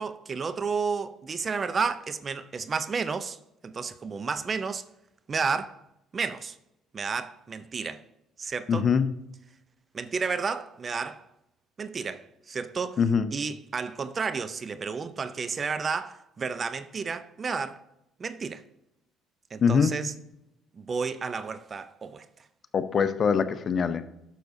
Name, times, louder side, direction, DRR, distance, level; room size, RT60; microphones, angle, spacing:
voice 1, 0.0-3.4 3.6-4.8 5.3-5.8 6.1-6.6 6.9-8.0 8.4-8.9 9.9-11.3 11.8-13.0 13.3-17.8 18.2-18.6 19.5-20.1 20.7-22.3, right 5 dB, 40° right, 0.6 m, -31 dB
voice 2, 8.7-9.1 13.0-13.3 19.6-20.0 22.7-24.1, left 6 dB, 45° left, 0.6 m, -23 dB
11.5 x 6.4 x 2.7 m
supercardioid pair, 70°, 0 cm